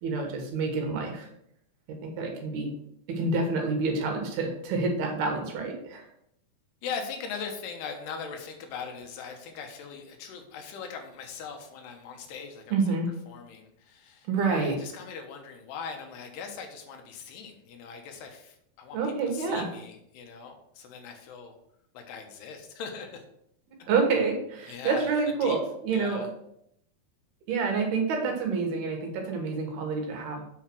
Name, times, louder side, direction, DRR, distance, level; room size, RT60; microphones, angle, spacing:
voice 1, 0.0-1.3 2.0-2.7 3.1-6.1 12.7-13.1 14.3-14.8 18.9-19.7 23.9-26.2 27.5-30.4, right 4 dB, 75° right, 2 dB, 3.4 m, -28 dB
voice 2, 6.8-12.8 13.3-21.5 21.9-23.2 23.8-23.9 24.7-25.1 25.4-25.6 25.9-26.3, left 6 dB, 85° left, 4 dB, 3.2 m, -40 dB
8.1 x 4.6 x 6.2 m, 0.74 s
omnidirectional pair, 4.6 m